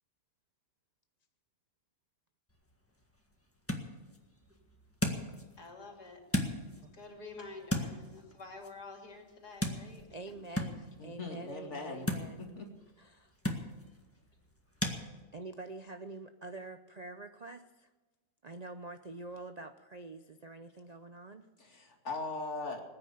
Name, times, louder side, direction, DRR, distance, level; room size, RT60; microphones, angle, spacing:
sound 1, 2.5-15.0, left 1 dB, 10° left, 1.6 m, -39 dB
voice 1, 5.6-6.4 6.9-10.3, left 3 dB, 70° left, 1 dB, 3.4 m, -49 dB
voice 2, 10.1-12.4 13.0-13.3 15.3-17.9 18.4-21.5, right 2 dB, 85° right, 8 dB, 0.3 m, -46 dB
voice 3, 11.0-12.1 12.4-12.7 21.6-22.8, left 3 dB, 45° left, 1 dB, 2.7 m, -40 dB
20.0 x 9.7 x 6.9 m, 1.2 s
omnidirectional pair, 1.7 m